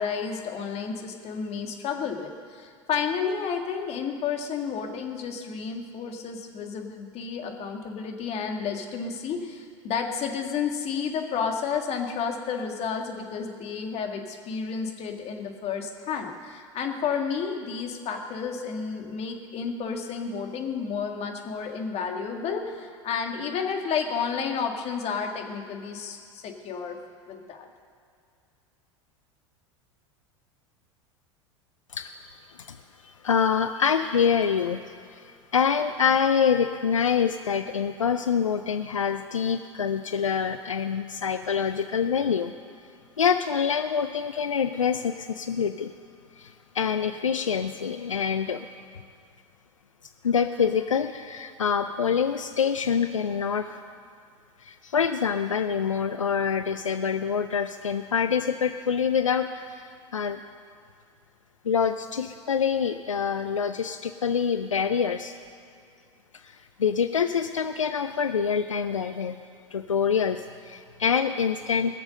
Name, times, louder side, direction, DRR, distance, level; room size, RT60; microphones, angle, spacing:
voice 1, 0.0-27.0 27.3-27.7, left 6 dB, 40° left, 3 dB, 1.9 m, -31 dB
voice 2, 33.0-42.5 43.2-45.9 46.4-48.7 50.2-53.8 54.6-60.4 61.6-65.3 66.3-69.4 69.7-72.0, left 7 dB, 85° left, 9 dB, 0.5 m, -26 dB
21.0 x 7.0 x 6.6 m, 2.4 s
figure-of-eight pair, 80°, 16 cm